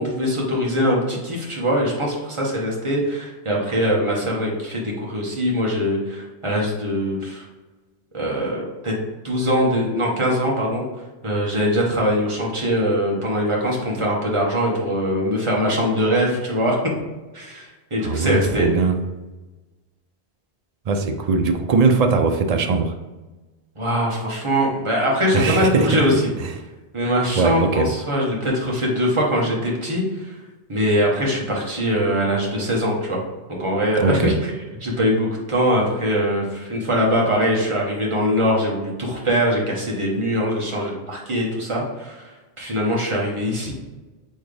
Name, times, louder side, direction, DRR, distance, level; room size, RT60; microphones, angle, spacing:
voice 1, 0.0-7.4 8.1-10.8 11.2-16.8 17.3-18.7 23.8-26.1 26.9-30.2 30.7-33.2 33.5-34.5 34.8-43.7, equal, 25° right, -2 dB, 1.2 m, -22 dB
voice 2, 18.0-19.0 20.9-22.9 25.3-26.0 26.4-26.5 27.4-27.9 34.0-34.3, right 4 dB, 60° right, 5 dB, 0.4 m, -20 dB
4.3 x 3.8 x 3.3 m, 1.2 s
omnidirectional pair, 1.2 m